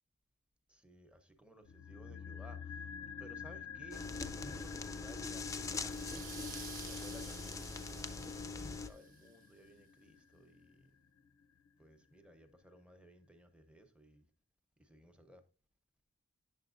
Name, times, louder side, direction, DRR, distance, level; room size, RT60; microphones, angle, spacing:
voice 1, 0.7-2.8 3.2-4.0 4.3-6.4 6.8-10.9 11.8-14.2 14.8-15.4, equal, 5° right, 0.7 m, -58 dB
sound 1, 1.6-11.9 12.2-12.3, left 7 dB, 80° left, 0.5 m, -50 dB
sound 2, 3.9-8.9, left 4 dB, 15° left, 0.4 m, -42 dB
sound 3, 5.8-9.3, right 8 dB, 40° right, 0.6 m, -52 dB
8.9 x 6.8 x 2.5 m
head